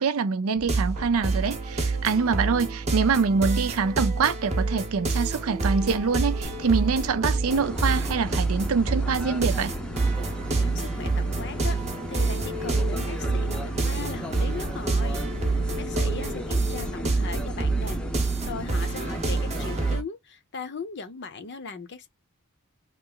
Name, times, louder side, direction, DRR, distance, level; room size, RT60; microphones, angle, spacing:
voice 1, 0.0-9.7, right 5 dB, 70° right, 0.5 m, -25 dB
sound 1, 0.6-20.0, right 3 dB, 30° right, 0.9 m, -28 dB
sound 2, 6.4-20.0, left 1 dB, 90° left, 1.1 m, -43 dB
sound 3, 7.5-20.0, right 1 dB, 5° left, 0.6 m, -35 dB
voice 2, 10.5-11.8 12.1-15.2 15.7-18.0 18.4-22.1, left 4 dB, 50° left, 0.7 m, -38 dB
3.1 x 2.0 x 3.8 m
head